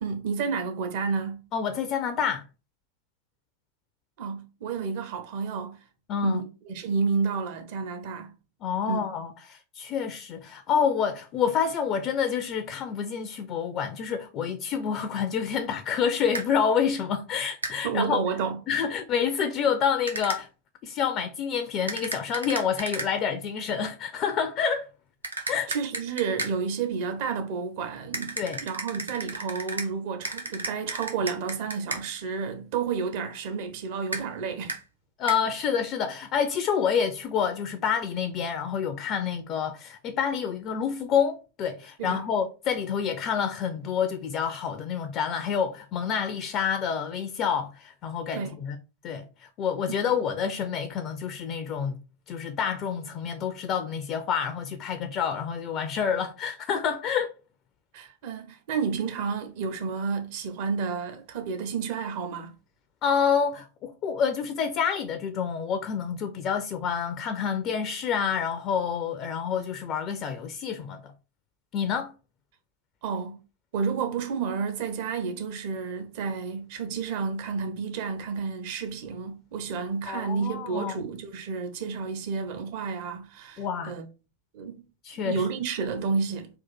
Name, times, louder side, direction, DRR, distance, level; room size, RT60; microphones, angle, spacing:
voice 1, 0.0-1.4 4.2-5.8 6.2-8.3 8.9-9.0 17.8-18.6 25.4-34.8 42.0-42.3 48.3-48.6 49.9-50.0 57.9-62.5 73.0-73.4 73.7-84.0 84.5-84.9 85.1-86.5, right 5 dB, 50° right, 0.9 m, -31 dB
voice 2, 1.5-2.4 6.1-6.4 8.6-18.2 18.7-20.5 20.8-24.9 25.5-25.7 28.4-28.6 35.2-48.8 49.0-52.0 52.3-57.3 63.0-71.1 71.7-72.1 80.1-81.1 83.6-83.9 85.0-85.5, left 7 dB, 35° left, 0.5 m, -28 dB
sound 1, 16.3-16.5 17.6-17.8 20.1-20.4 21.9-23.1 25.2-26.6 28.1-29.9 30.2-32.0 34.1-34.2 34.7-34.8 35.3-35.4, right 2 dB, 80° right, 0.8 m, -33 dB
3.9 x 2.5 x 4.2 m
figure-of-eight pair, 90°, 0 cm